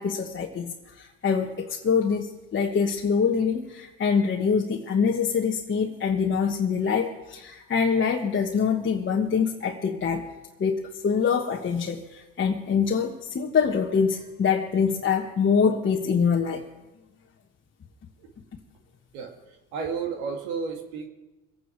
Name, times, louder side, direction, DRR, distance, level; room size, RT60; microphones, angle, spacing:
voice 1, 0.0-10.2 10.6-16.6, left 6 dB, 30° left, 0 dB, 1.3 m, -25 dB
voice 2, 19.7-21.1, right 5 dB, 90° right, 4 dB, 2.3 m, -31 dB
23.5 x 9.4 x 4.6 m, 1.1 s
supercardioid pair, 100°, 37 cm